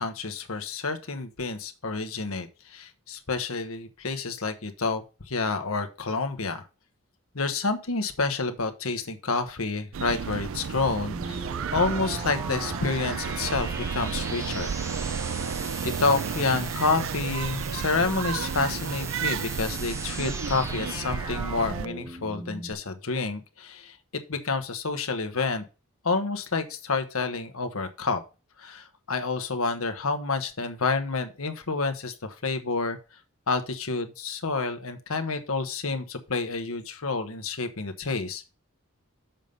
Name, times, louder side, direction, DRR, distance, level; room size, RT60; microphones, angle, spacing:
voice 1, 0.0-6.7 7.3-15.1 15.8-24.0 24.3-25.6 26.0-28.2 28.6-33.0 33.5-38.5, left 4 dB, 75° left, 7 dB, 1.2 m, -29 dB
sound 1, 9.9-21.9, right 6 dB, 65° right, 0.4 m, -32 dB
sound 2, 10.8-22.7, right 2 dB, 15° right, 1.0 m, -38 dB
7.4 x 5.3 x 5.4 m, 0.31 s
head